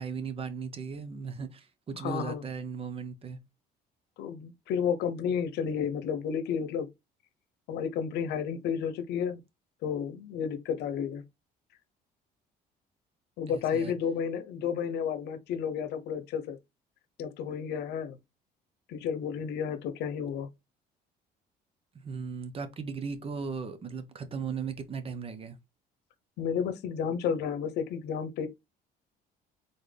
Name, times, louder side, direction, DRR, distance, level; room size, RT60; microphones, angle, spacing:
voice 1, 0.0-3.4 13.5-13.9 21.9-25.6, right 5 dB, 35° right, 0.9 m, -37 dB
voice 2, 2.0-2.4 4.2-6.9 7.7-9.4 9.8-11.2 13.4-16.6 17.2-18.2 18.9-20.5 26.4-28.5, left 7 dB, 80° left, 0.8 m, -31 dB
4.0 x 3.9 x 3.3 m
cardioid pair, 110°, 17 cm